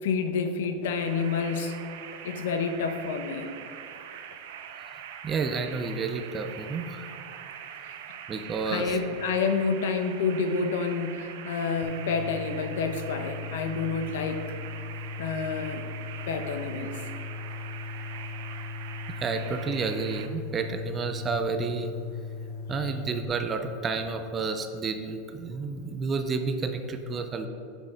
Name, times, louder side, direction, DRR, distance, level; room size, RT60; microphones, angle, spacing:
voice 1, 0.0-1.8 2.2-3.5 8.7-14.5 15.2-15.9 16.3-16.9, left 5 dB, 80° left, 7 dB, 0.8 m, -29 dB
sound 1, 0.9-20.3, right 8 dB, 60° right, 0.6 m, -43 dB
voice 2, 5.2-7.1 8.3-9.0 19.1-21.9 22.7-27.5, right 4 dB, 15° right, 7 dB, 0.4 m, -30 dB
sound 2, 11.8-23.3, left 4 dB, 45° left, 0.6 m, -38 dB
6.3 x 6.2 x 5.1 m, 2.5 s
supercardioid pair, 180°, 0 cm